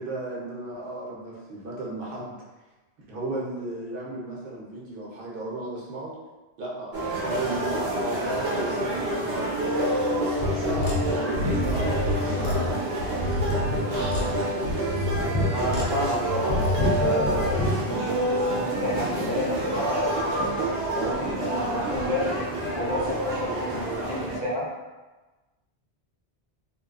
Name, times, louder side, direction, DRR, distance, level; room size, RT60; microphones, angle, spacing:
voice 1, 0.0-2.3 3.1-6.2 6.6-10.0 10.4-13.0, right 2 dB, 60° right, -4 dB, 0.7 m, -34 dB
sound 1, 6.9-24.4, right 1 dB, 90° right, 0.9 m, -28 dB
sound 2, 10.4-17.7, left 1 dB, 70° left, 0.8 m, -28 dB
voice 2, 15.5-20.4 20.9-22.4 22.8-23.8 24.1-24.7, left 1 dB, 30° left, -10 dB, 0.4 m, -30 dB
2.7 x 2.2 x 2.3 m, 1.2 s
omnidirectional pair, 1.1 m